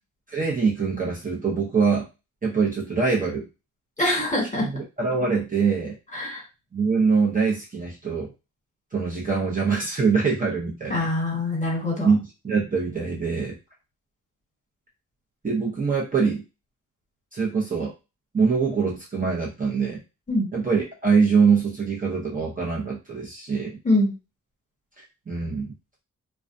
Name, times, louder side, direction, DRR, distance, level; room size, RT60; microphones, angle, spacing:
voice 1, 0.3-2.1 2.4-3.5 4.6-6.0 6.7-8.3 8.9-11.0 12.0-13.6 15.4-16.4 17.3-17.9 18.3-20.0 20.5-23.8 25.0-25.7, right 5 dB, 25° right, -4 dB, 0.7 m, -24 dB
voice 2, 4.0-4.7 6.1-6.4 10.9-12.1 20.3-20.5 23.8-24.1, left 1 dB, 25° left, -2 dB, 1.3 m, -24 dB
2.3 x 2.2 x 2.5 m, 0.28 s
cardioid pair, 85°, 32 cm